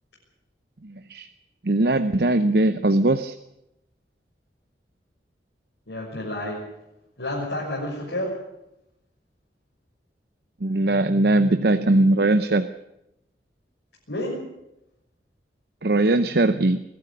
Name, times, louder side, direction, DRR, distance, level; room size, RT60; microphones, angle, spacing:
voice 1, 1.6-3.3 10.6-12.7 15.8-16.8, right 2 dB, 60° right, 10 dB, 0.8 m, -20 dB
voice 2, 5.9-6.6 7.2-8.3 14.1-14.4, left 1 dB, 85° left, -5 dB, 6.5 m, -29 dB
21.5 x 13.5 x 9.8 m, 0.88 s
head